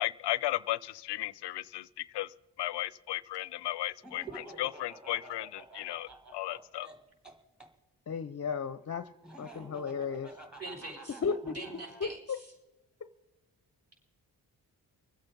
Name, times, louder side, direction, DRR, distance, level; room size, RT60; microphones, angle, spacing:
voice 1, 0.0-2.3 2.6-4.2 4.6-6.9, left 16 dB, 80° left, 21 dB, 0.5 m, -35 dB
Laughter, 4.0-7.7 9.2-12.2, right 2 dB, ahead, 2.0 m, -51 dB
voice 2, 8.1-10.3 11.2-11.5 12.0-12.4, left 6 dB, 40° left, 14 dB, 0.6 m, -34 dB
voice 3, 10.6-12.5, right 2 dB, 35° right, -1 dB, 5.9 m, -44 dB
24.0 x 8.2 x 5.2 m, 1.1 s
supercardioid pair, 50°, 41 cm